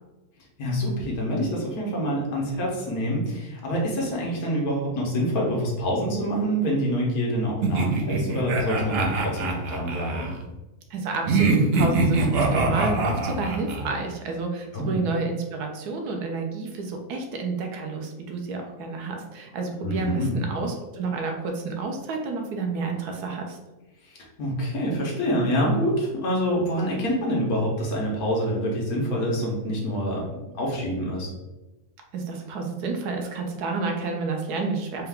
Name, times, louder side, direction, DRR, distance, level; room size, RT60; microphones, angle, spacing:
voice 1, 0.6-10.3 14.7-15.0 19.8-20.4 24.0-31.3, equal, 70° left, -2 dB, 1.5 m, -26 dB
sound 1, 7.6-10.3 11.3-13.9, right 3 dB, 60° right, 0.6 m, -24 dB
voice 2, 10.9-23.6 32.1-35.1, right 4 dB, 90° right, 3 dB, 1.2 m, -30 dB
4.4 x 2.4 x 3.5 m, 1.1 s
omnidirectional pair, 1.6 m